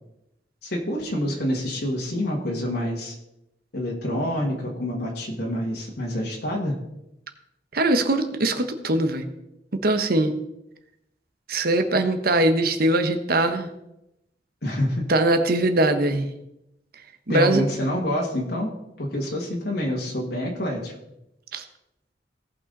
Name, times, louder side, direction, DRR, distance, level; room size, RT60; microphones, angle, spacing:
voice 1, 0.6-3.2 3.7-6.8 14.6-15.1 17.3-18.7 19.0-20.9, left 1 dB, 65° left, -1 dB, 2.0 m, -27 dB
voice 2, 7.7-9.2 9.8-10.3 11.5-13.7 15.1-16.3 17.3-17.6 21.5-21.6, right 2 dB, 60° right, 8 dB, 1.2 m, -21 dB
17.5 x 5.9 x 4.1 m, 0.86 s
head